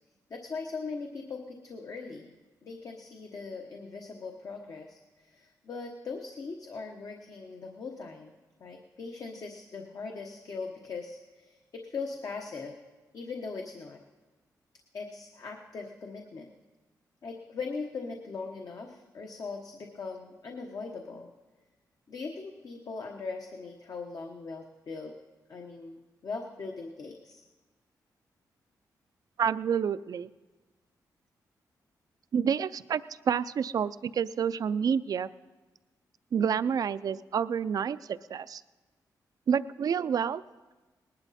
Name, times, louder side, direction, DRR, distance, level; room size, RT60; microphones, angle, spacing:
voice 1, 0.3-2.3 2.6-8.3 8.6-12.8 13.1-14.0 14.9-16.5 17.2-21.3 22.1-25.1 25.5-27.4, left 4 dB, 55° left, 2 dB, 1.2 m, -40 dB
voice 2, 29.4-30.3 32.3-35.3 36.3-38.6 39.5-40.4, right 7 dB, 60° right, 16 dB, 0.4 m, -29 dB
19.5 x 11.5 x 4.2 m, 1.2 s
cardioid pair, 75°, 7 cm